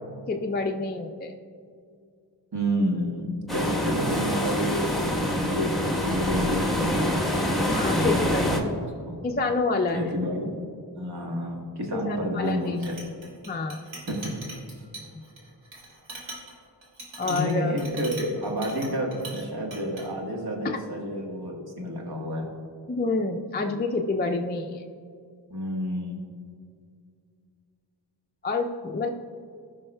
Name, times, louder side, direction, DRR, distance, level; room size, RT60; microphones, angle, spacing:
voice 1, 0.3-1.3 7.7-8.5 9.2-10.0 11.9-12.8 13.5-13.8 15.1-15.2 17.2-17.8 20.6-20.8 22.9-24.8 28.4-29.1, left 3 dB, 25° left, 3 dB, 0.4 m, -28 dB
voice 2, 2.5-7.2 7.9-8.6 9.1-9.2 9.9-10.5 10.9-12.9 14.1-14.3 17.3-22.5 25.5-26.2, equal, 60° right, 0 dB, 1.4 m, -30 dB
sound 1, 3.5-8.6, left 1 dB, ahead, 1.1 m, -26 dB
Chink clink, 12.4-19.4 19.7-20.0, right 2 dB, 90° right, 1.9 m, -41 dB
14.5 x 5.5 x 2.2 m, 2.3 s
wide cardioid pair, 65°, 44 cm